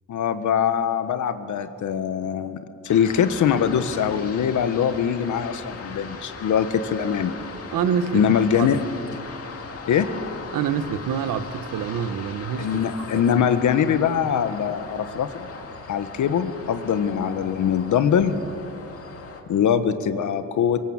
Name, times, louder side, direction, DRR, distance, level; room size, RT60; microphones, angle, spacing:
voice 1, 0.1-2.6 2.8-7.3 8.1-8.8 9.9-10.1 12.6-15.5 15.9-18.4 19.5-20.8, left 8 dB, 70° left, 10 dB, 1.3 m, -22 dB
sound 1, 2.9-19.4, left 4 dB, 45° left, 2.4 m, -39 dB
voice 2, 7.7-8.7 10.5-13.4, right 8 dB, 85° right, 11 dB, 1.3 m, -27 dB
24.0 x 24.0 x 7.4 m, 2.8 s
cardioid pair, 150°, 31 cm